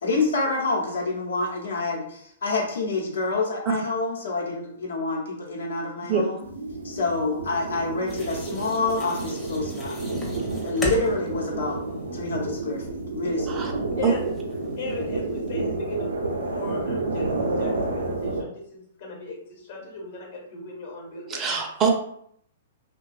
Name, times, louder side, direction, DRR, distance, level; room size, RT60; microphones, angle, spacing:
voice 1, 0.0-6.4 6.8-10.1 10.6-11.8 12.1-13.8, left 3 dB, 80° left, -2 dB, 0.8 m, -27 dB
sound 1, 6.4-18.4, right 2 dB, 90° right, 0.5 m, -30 dB
sound 2, 8.1-15.5, left 1 dB, 15° left, 0.6 m, -40 dB
voice 2, 14.8-16.1 16.4-21.4, left 3 dB, 60° left, -1 dB, 1.0 m, -37 dB
voice 3, 21.3-21.9, right 6 dB, 25° right, 2 dB, 0.4 m, -23 dB
2.6 x 2.2 x 2.3 m, 0.68 s
hypercardioid pair, 120°, 0 cm